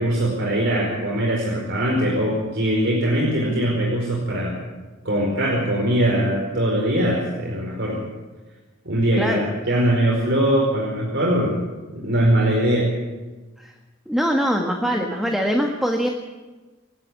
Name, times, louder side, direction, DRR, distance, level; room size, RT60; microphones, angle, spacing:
voice 1, 0.0-4.5 5.0-8.0 8.8-11.6 11.9-12.9, right 1 dB, 65° right, -3 dB, 4.9 m, -21 dB
voice 2, 9.1-9.5 13.6-13.7 14.1-16.1, equal, ahead, 1 dB, 1.7 m, -22 dB
28.5 x 9.7 x 9.5 m, 1.2 s
head